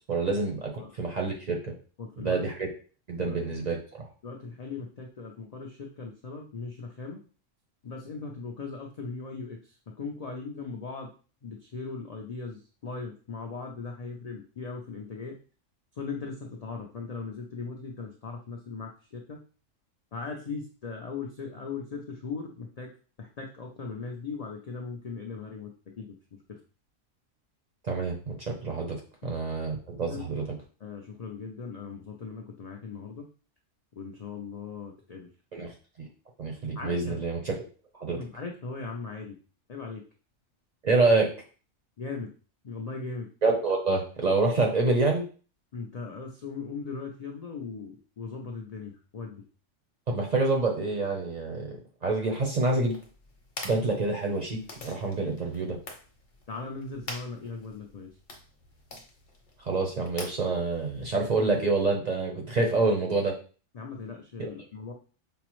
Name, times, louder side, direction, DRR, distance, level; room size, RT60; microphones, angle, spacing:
voice 1, 0.1-0.7 1.0-1.7 2.2-2.7 3.1-4.0 27.8-29.0 29.2-30.4 35.5-35.7 36.4-37.5 38.0-38.2 40.8-41.3 43.4-45.2 50.1-51.8 52.0-53.0 53.6-55.8 59.6-63.3 64.4-64.5, right 3 dB, 45° right, 1 dB, 0.6 m, -27 dB
voice 2, 2.0-2.4 3.2-3.4 4.2-7.2 7.8-11.1 11.4-15.3 15.9-19.4 20.1-22.9 23.2-26.6 29.2-29.3 30.1-30.3 30.8-33.3 34.0-35.3 36.8-37.2 38.1-39.4 39.7-40.0 42.0-42.3 42.6-43.3 45.7-49.4 56.5-58.2 63.7-64.9, left 4 dB, 70° left, 0 dB, 0.3 m, -39 dB
sound 1, 52.8-61.8, left 2 dB, 45° left, 0.9 m, -46 dB
5.3 x 2.0 x 3.0 m, 0.38 s
omnidirectional pair, 1.3 m